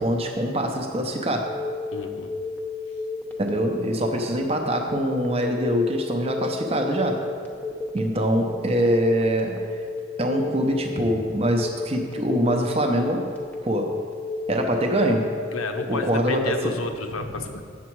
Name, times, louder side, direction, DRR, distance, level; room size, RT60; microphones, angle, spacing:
voice 1, 0.0-1.6 3.4-7.3 7.9-9.8 10.2-13.3 13.6-14.0 14.5-15.3 15.9-16.5, equal, 30° right, 2 dB, 0.6 m, -24 dB
Telephone, 1.4-16.7, left 3 dB, 10° left, 0.8 m, -33 dB
voice 2, 1.9-2.3 15.5-17.6, left 3 dB, 85° left, 6 dB, 0.7 m, -31 dB
8.3 x 7.1 x 4.6 m, 2.1 s
head